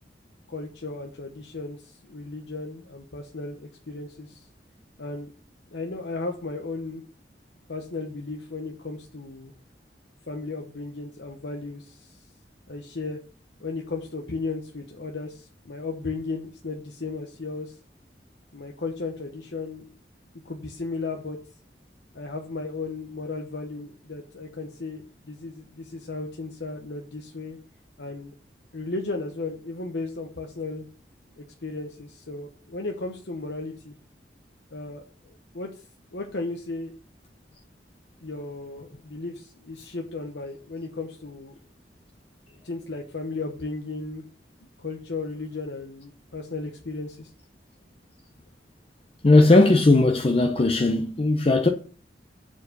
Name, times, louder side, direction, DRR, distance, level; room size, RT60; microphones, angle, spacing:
voice 1, 0.5-4.5 5.0-5.3 5.7-7.0 7.7-9.5 10.3-12.2 12.7-13.2 13.6-17.8 18.5-19.8 20.4-21.4 22.1-27.6 28.0-28.3 28.7-30.9 31.4-33.9 34.7-35.9 36.1-36.9 38.2-41.5 42.6-44.2 44.6-47.3, left 3 dB, 75° left, 1.0 m, -35 dB
voice 2, 49.2-51.7, left 2 dB, 35° left, 0.6 m, -18 dB
7.2 x 4.6 x 6.6 m
head